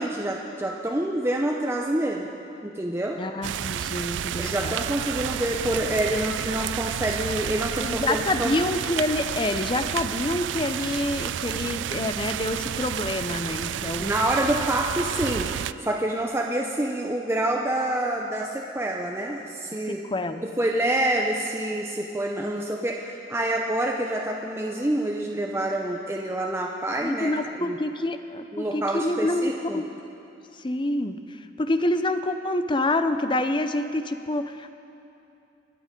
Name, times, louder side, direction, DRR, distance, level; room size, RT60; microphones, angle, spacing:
voice 1, 0.0-2.3 2.6-3.2 4.4-8.6 14.0-20.0 20.4-27.3 27.6-27.8 28.5-29.8, right 1 dB, 15° right, 0 dB, 0.7 m, -27 dB
voice 2, 3.2-4.7 7.8-14.1 19.9-20.4 25.4-25.6 27.0-29.9 30.6-31.2 31.6-34.7, left 2 dB, 25° left, 9 dB, 0.6 m, -27 dB
sound 1, 3.4-15.7, right 10 dB, 80° right, 0.3 m, -31 dB
24.0 x 8.9 x 5.2 m, 2.7 s
head